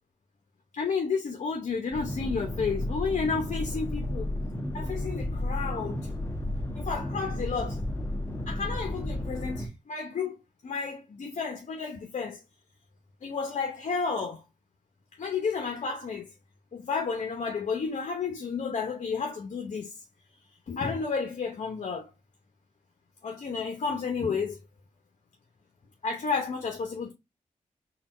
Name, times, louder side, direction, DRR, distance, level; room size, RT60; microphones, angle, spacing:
voice 1, 0.7-4.3 4.7-6.1 6.8-7.8 8.5-10.4 10.6-12.4 13.2-14.4 15.2-16.3 16.7-19.9 20.7-22.1 23.2-24.6 26.0-27.1, left 5 dB, 60° left, 0.8 m, -31 dB
sound 1, 1.9-9.7, left 1 dB, 15° left, 1.5 m, -33 dB
4.0 x 2.3 x 4.2 m
cardioid pair, 80°, 13 cm